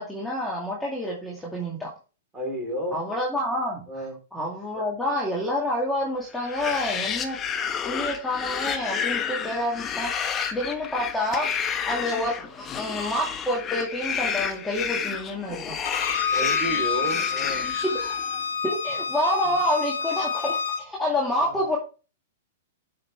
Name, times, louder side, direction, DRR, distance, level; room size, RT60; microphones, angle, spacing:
voice 1, 0.0-1.9 2.9-4.0 4.3-7.4 7.8-11.5 11.8-15.8 18.6-21.8, left 1 dB, 5° left, -3 dB, 2.1 m, -28 dB
voice 2, 2.3-3.0 3.9-4.2 16.3-17.8 19.5-19.6, right 1 dB, 15° right, 0 dB, 3.8 m, -32 dB
sound 1, 6.4-18.4, left 7 dB, 25° left, 1.0 m, -30 dB
Bowed string instrument, 15.8-20.8, left 6 dB, 80° left, 2.9 m, -28 dB
7.6 x 5.8 x 3.4 m, 0.34 s
hypercardioid pair, 120°, 0 cm